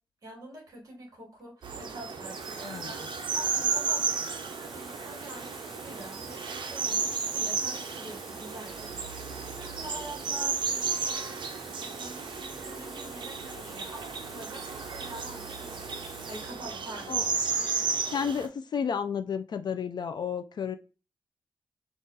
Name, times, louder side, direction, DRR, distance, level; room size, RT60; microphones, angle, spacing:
voice 1, 0.2-16.0 16.3-17.2, right 1 dB, 40° right, 0 dB, 1.9 m, -46 dB
Water tap faucet, 1.4-1.6 2.2-16.7 17.6-17.8, equal, ahead, 0.5 m, -49 dB
sound 1, 1.6-18.5, right 5 dB, 60° right, 0.6 m, -33 dB
voice 2, 18.1-20.8, left 7 dB, 55° left, 9 dB, 0.4 m, -32 dB
3.8 x 2.4 x 3.9 m, 0.34 s
wide cardioid pair, 170°, 9 cm